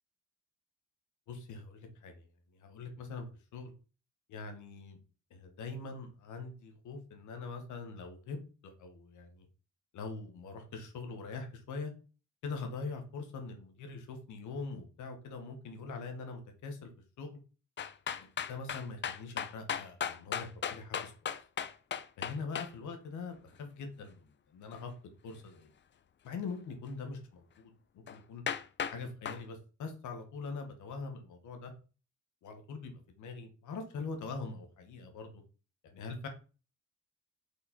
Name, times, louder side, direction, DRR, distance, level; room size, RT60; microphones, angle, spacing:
voice 1, 1.3-2.2 2.6-3.3 3.5-3.7 4.3-5.0 5.3-8.4 8.6-9.5 9.9-11.9 12.4-16.9 17.2-17.4 18.2-21.1 22.2-24.9 25.2-25.7 26.2-28.4 28.9-31.7 32.4-35.4 35.8-36.3, left 4 dB, 75° left, 5 dB, 1.6 m, -43 dB
sound 1, 17.8-22.7 28.1-28.2 28.5-29.0 29.2-29.4, left 8 dB, 40° left, 0.6 m, -36 dB
5.2 x 4.2 x 4.4 m, 0.35 s
cardioid pair, 90°, 30 cm